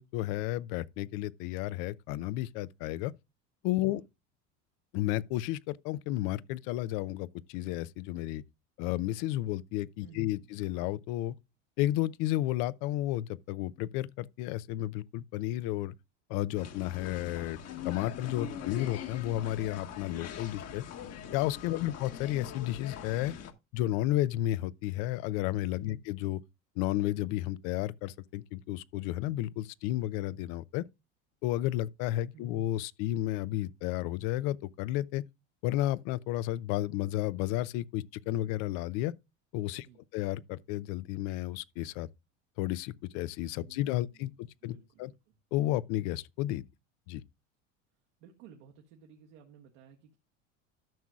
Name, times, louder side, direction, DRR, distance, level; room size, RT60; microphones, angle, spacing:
voice 1, 0.0-3.1 3.6-4.0 4.9-8.4 8.8-11.3 11.8-15.9 16.3-17.6 17.8-20.8 21.3-23.3 23.7-26.4 26.8-30.8 31.4-35.2 35.6-39.1 39.5-39.9 40.1-42.1 42.6-45.1 45.5-46.6 47.1-47.2, left 15 dB, 65° left, 0.6 m, -32 dB
voice 2, 10.0-10.6 18.4-18.7 21.7-21.9 25.8-26.1 32.3-32.6 39.8-40.0 43.6-45.4 48.2-50.2, right 7 dB, 75° right, 1.7 m, -56 dB
sound 1, 16.5-23.5, left 8 dB, 45° left, 1.3 m, -42 dB
13.5 x 6.1 x 2.3 m
supercardioid pair, 100°, 36 cm